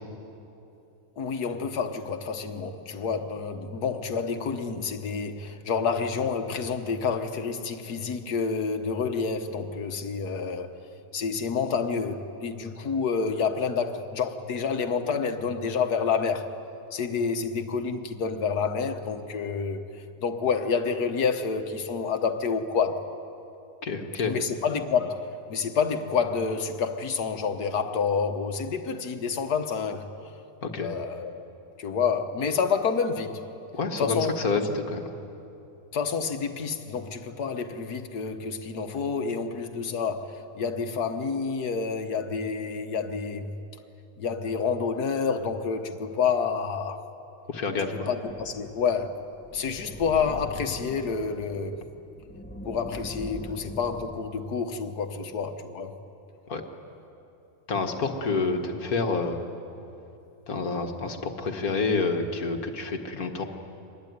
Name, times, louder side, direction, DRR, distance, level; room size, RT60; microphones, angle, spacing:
voice 1, 1.2-10.8 11.1-16.5 16.9-19.8 20.2-23.1 24.3-30.1 30.8-31.5 31.8-33.5 34.0-34.8 35.9-43.6 44.2-47.0 47.8-49.2 49.5-51.8 52.7-56.0, left 5 dB, 85° left, 1.8 m, -28 dB
voice 2, 23.8-24.4 30.6-30.9 33.7-35.1 47.5-48.1 56.5-56.6 57.7-59.4 60.5-63.4, left 4 dB, 70° left, 2.2 m, -28 dB
sound 1, 48.2-54.3, left 2 dB, 10° left, 0.8 m, -42 dB
24.5 x 20.5 x 9.5 m
omnidirectional pair, 1.6 m